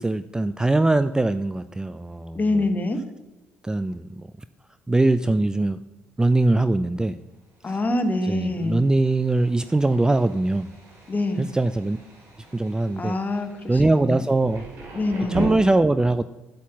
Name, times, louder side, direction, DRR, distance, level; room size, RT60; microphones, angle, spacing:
voice 1, 0.0-2.7 3.6-4.3 4.9-5.8 6.2-7.2 7.7-7.8 8.2-10.7 11.4-12.0 12.5-13.2 13.7-14.6 15.3-16.2, right 2 dB, 10° right, 12 dB, 0.5 m, -22 dB
voice 2, 2.3-3.0 7.6-8.8 11.1-11.5 13.0-14.2 14.9-15.5, left 2 dB, 25° left, 7 dB, 1.7 m, -25 dB
Thunder, 7.3-15.5, right 3 dB, 55° right, 4.4 m, -41 dB
11.0 x 8.3 x 6.0 m, 1.1 s
figure-of-eight pair, 50°, 6 cm